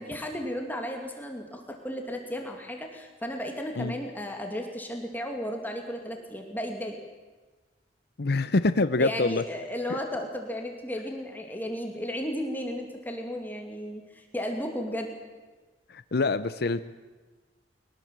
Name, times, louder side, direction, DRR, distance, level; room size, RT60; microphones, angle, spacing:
voice 1, 0.0-7.0 9.0-15.1, equal, 10° left, 2 dB, 2.5 m, -34 dB
voice 2, 8.2-9.4 9.9-10.0 15.9-16.8, left 3 dB, 60° left, 13 dB, 0.7 m, -25 dB
23.0 x 18.5 x 7.5 m, 1.3 s
head